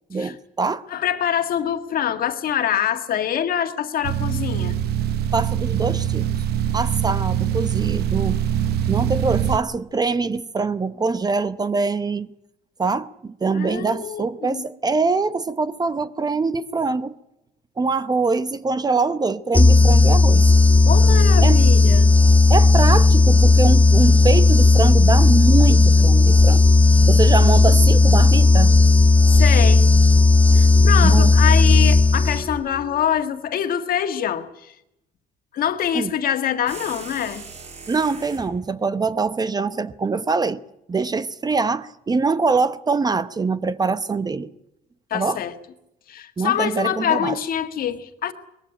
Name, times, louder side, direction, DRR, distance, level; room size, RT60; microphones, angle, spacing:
voice 1, 0.1-0.8 5.3-6.3 6.7-8.4 8.9-12.3 12.8-17.2 17.8-20.5 21.4-21.6 22.5-26.6 27.1-28.8 31.0-31.3 35.9-36.1 37.9-40.6 40.9-44.5 45.1-45.4 46.4-47.4, right 4 dB, 25° right, 0.8 m, -23 dB
voice 2, 0.9-4.8 13.5-14.6 20.8-22.1 29.3-29.9 30.5-34.7 35.5-37.4 45.1-45.5 46.1-48.3, left 9 dB, 60° left, 1.8 m, -25 dB
sound 1, 4.0-9.6, right 10 dB, 70° right, 0.9 m, -23 dB
sound 2, 19.5-32.7, left 3 dB, 10° left, 1.0 m, -14 dB
sound 3, 36.7-38.5, right 4 dB, 40° right, 4.8 m, -39 dB
20.5 x 15.0 x 10.0 m
cardioid pair, 110°, 17 cm